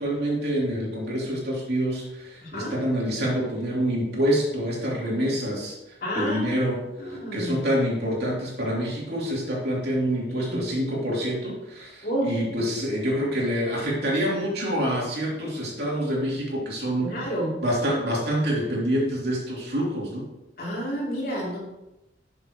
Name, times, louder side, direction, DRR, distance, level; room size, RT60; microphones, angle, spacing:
voice 1, 0.0-17.3 17.6-20.2, equal, 65° right, -4 dB, 3.2 m, -27 dB
voice 2, 2.4-2.8 6.0-6.4 7.0-7.6 10.3-10.6 12.0-12.3 17.0-17.6 20.6-21.6, equal, 55° left, -5 dB, 3.2 m, -29 dB
11.5 x 7.1 x 3.1 m, 0.94 s
head